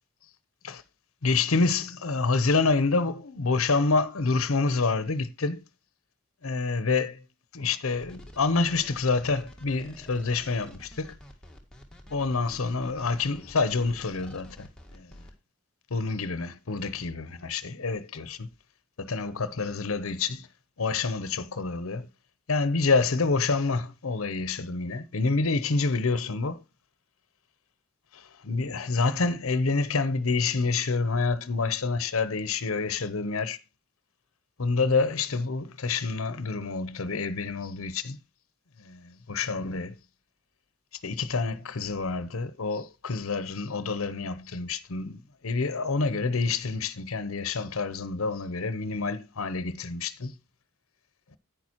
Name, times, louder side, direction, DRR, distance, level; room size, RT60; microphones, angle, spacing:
voice 1, 1.2-5.6 6.4-7.1 7.5-11.1 12.1-14.7 14.9-15.1 15.9-18.5 19.0-20.5 20.8-22.1 22.5-26.6 28.4-33.6 34.6-38.2 38.8-39.9 41.0-50.3, left 4 dB, 80° left, 0.8 m, -27 dB
sound 1, 7.9-15.3, equal, 5° left, 1.9 m, -49 dB
10.5 x 9.2 x 2.9 m
head